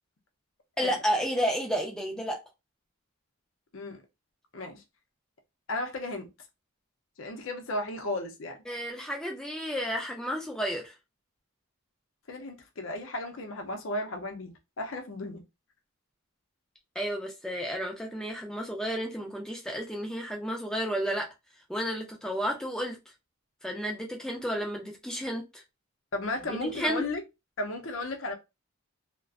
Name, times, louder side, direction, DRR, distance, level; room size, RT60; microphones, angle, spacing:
voice 1, 0.8-2.4 8.7-10.9 17.0-21.3 21.7-23.0 23.6-25.6 26.5-27.0, equal, 5° left, 0.4 m, -32 dB
voice 2, 4.5-4.8 5.7-6.3 7.2-8.6 12.3-15.4 26.1-27.2 27.6-28.3, left 2 dB, 60° left, 0.6 m, -34 dB
2.4 x 2.1 x 2.4 m
head